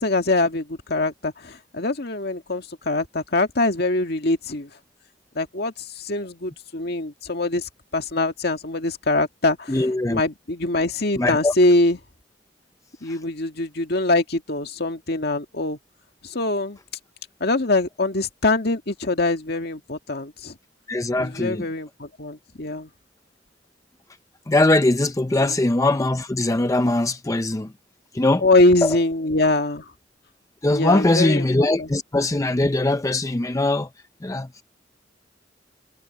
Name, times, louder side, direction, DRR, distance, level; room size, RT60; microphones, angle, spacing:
voice 1, 0.0-4.7 5.4-9.8 10.1-12.0 13.0-15.8 16.2-16.8 17.4-20.5 21.2-22.9 25.4-25.6 28.4-29.8 30.7-31.5 31.8-31.9, left 2 dB, 60° left, 2.1 m, -23 dB
voice 2, 9.7-10.2 11.2-11.5 13.1-13.2 20.9-21.6 24.5-27.7 28.1-28.4 28.8-29.0 30.6-33.9 34.2-34.6, left 2 dB, 15° left, 0.5 m, -21 dB
head